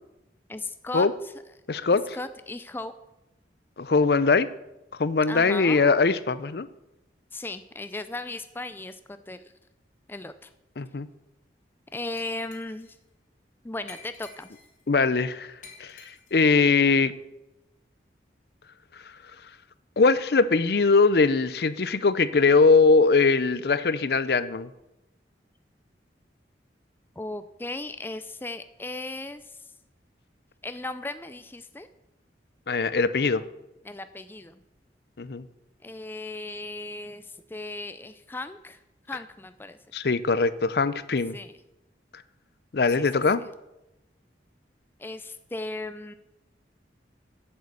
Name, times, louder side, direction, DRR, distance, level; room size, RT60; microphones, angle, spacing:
voice 1, 0.5-1.3 2.1-2.9 5.3-5.9 7.3-9.5 10.1-10.5 11.9-13.0 13.6-14.5 27.2-29.7 30.6-31.9 33.8-34.6 35.8-38.8 39.1-39.8 41.3-41.5 43.0-43.1 45.0-46.1, left 2 dB, 10° left, 11 dB, 0.4 m, -36 dB
voice 2, 1.7-2.2 3.8-4.5 4.9-6.7 10.8-11.1 14.9-15.5 15.8-16.0 16.3-17.1 20.0-24.7 32.7-33.4 35.2-35.5 39.9-41.4 42.7-43.4, left 4 dB, 60° left, 15 dB, 0.5 m, -21 dB
Glass, 12.2-13.0 13.9-14.8 15.6-16.5, left 5 dB, 45° left, 1.9 m, -49 dB
8.0 x 7.8 x 8.2 m, 0.92 s
head